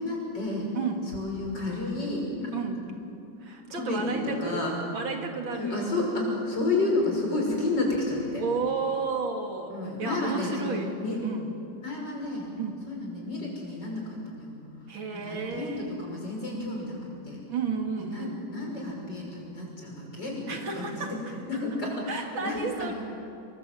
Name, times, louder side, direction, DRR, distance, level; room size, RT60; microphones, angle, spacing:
voice 1, 0.0-0.7 1.1-2.5 3.5-4.7 5.5-8.4 9.7-11.2 11.8-12.5 12.9-14.5 14.9-17.0 17.2-17.4 18.0-20.8 21.5-22.9, left 2 dB, 65° left, -1 dB, 6.6 m, -31 dB
voice 2, 0.7-1.1 2.5-2.8 3.4-4.7 4.9-5.9 8.4-9.7 10.0-11.0 11.2-11.5 12.6-12.8 14.9-15.9 17.5-18.4 20.5-21.1 22.1-22.9, right 5 dB, 90° right, 3 dB, 3.2 m, -32 dB
28.0 x 22.5 x 7.8 m, 2.7 s
omnidirectional pair, 2.1 m